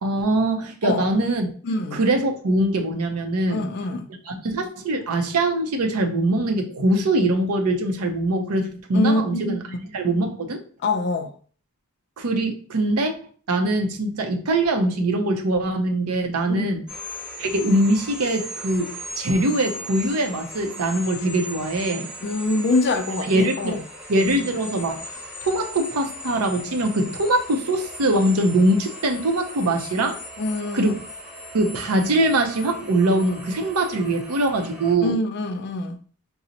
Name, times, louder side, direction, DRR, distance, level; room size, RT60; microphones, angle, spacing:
voice 1, 0.0-1.5 1.9-3.7 4.3-9.6 9.9-10.6 12.2-13.1 13.5-16.8 17.4-22.1 23.3-23.8 24.1-25.0 25.4-30.2 30.7-31.0 31.5-35.2, right 1 dB, 85° right, 0.6 m, -22 dB
voice 2, 1.6-2.0 3.5-4.1 8.9-9.8 10.8-11.3 16.5-16.7 22.2-23.8 30.4-31.0 35.0-36.0, left 2 dB, 50° left, 0.4 m, -25 dB
sound 1, 16.9-34.9, equal, 5° right, 0.6 m, -38 dB
3.8 x 2.0 x 2.8 m
head